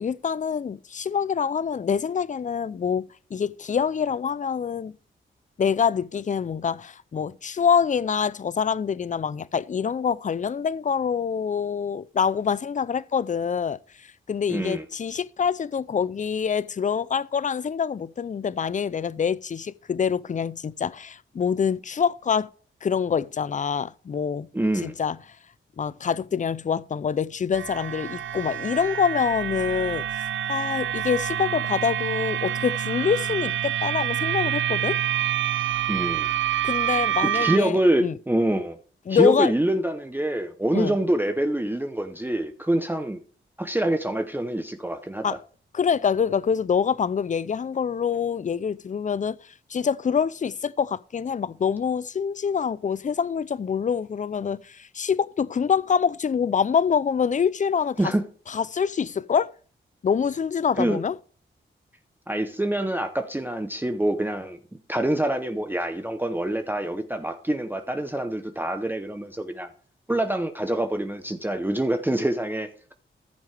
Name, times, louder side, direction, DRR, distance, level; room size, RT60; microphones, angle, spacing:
voice 1, 0.0-3.0 3.3-4.9 5.6-22.5 22.8-24.5 24.8-25.2 25.8-35.0 36.6-38.2 39.1-39.5 40.7-41.0 45.2-45.4 45.7-58.1 58.5-59.5 60.0-61.2, left 7 dB, 35° left, 0.4 m, -25 dB
voice 2, 14.5-14.8 24.5-24.9 35.9-36.3 37.3-38.8 39.1-43.2 43.6-45.4 58.0-58.2 60.8-61.0 62.3-64.6 64.9-69.7 70.1-72.9, right 1 dB, 10° right, 0.8 m, -25 dB
sound 1, 27.5-37.6, right 11 dB, 65° right, 0.4 m, -27 dB
14.0 x 6.1 x 3.3 m
cardioid pair, 65°, 21 cm